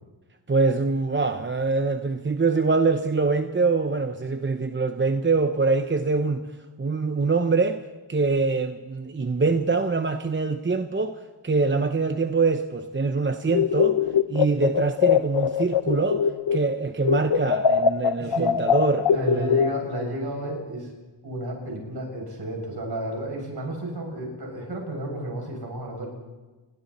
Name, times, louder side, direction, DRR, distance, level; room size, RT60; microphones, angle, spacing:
voice 1, 0.5-6.5 6.8-14.0 14.3-16.2 16.5-19.6, right 4 dB, 25° right, 7 dB, 0.9 m, -24 dB
sound 1, 13.5-16.7 17.0-20.1, left 7 dB, 65° left, 0.9 m, -22 dB
voice 2, 18.2-18.5 19.0-20.9 21.2-26.1, right 1 dB, 50° right, 0 dB, 7.5 m, -32 dB
30.0 x 21.5 x 4.3 m, 1.2 s
wide cardioid pair, 110°, 47 cm